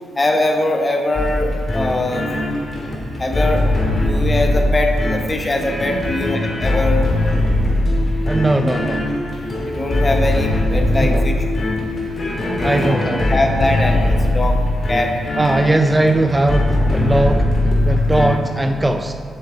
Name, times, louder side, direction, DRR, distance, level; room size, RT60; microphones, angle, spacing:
voice 1, 0.2-2.3 3.2-3.6 3.9-7.1 9.6-11.5 12.6-14.6 14.9-15.1, left 1 dB, 25° left, 4 dB, 1.0 m, -22 dB
sound 1, 1.1-18.3, left 1 dB, 40° left, 1.9 m, -20 dB
voice 2, 8.3-9.1 11.0-11.3 12.6-13.4 15.4-17.5 17.8-19.1, right 2 dB, 15° right, 5 dB, 0.4 m, -19 dB
7.7 x 6.2 x 3.8 m, 2.3 s
cardioid pair, 75°, 0 cm